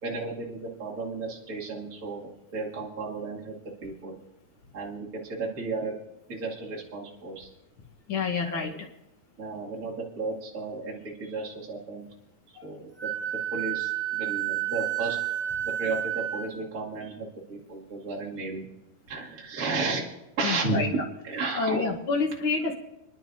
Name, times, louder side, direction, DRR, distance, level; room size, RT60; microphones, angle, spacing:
voice 1, 0.0-4.2 4.7-5.9 6.3-7.5 8.4-8.6 9.4-12.1 12.6-13.1 13.5-15.2 15.6-18.6 19.1-20.1 20.4-21.8, right 3 dB, 30° right, -4 dB, 2.1 m, -33 dB
voice 2, 8.1-8.7 12.6-12.7 20.4-20.9 21.5-22.7, left 4 dB, 80° left, -1 dB, 1.1 m, -28 dB
Wind instrument woodwind instrument, 13.0-16.5, right 12 dB, 25° left, 2.5 m, -30 dB
29.0 x 10.5 x 2.7 m, 0.92 s
omnidirectional pair, 4.2 m